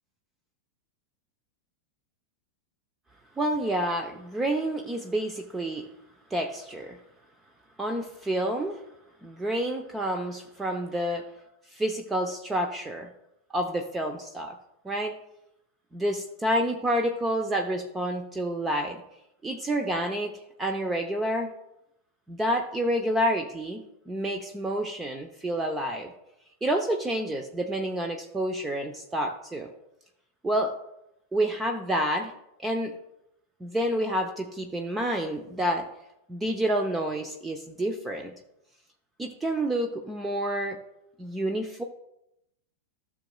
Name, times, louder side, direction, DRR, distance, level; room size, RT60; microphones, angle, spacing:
voice 1, 3.4-5.9 6.3-7.0 7.8-8.8 9.2-11.3 11.7-13.1 13.5-14.5 14.8-15.1 15.9-19.0 19.4-21.5 22.3-26.1 26.6-29.7 30.4-30.7 31.3-32.3 32.6-32.9 33.6-35.9 36.3-38.3 39.2-40.8 41.2-41.8, right 1 dB, 10° right, 4 dB, 0.7 m, -29 dB
15.5 x 6.3 x 2.3 m, 0.86 s
figure-of-eight pair, 90°, 0 cm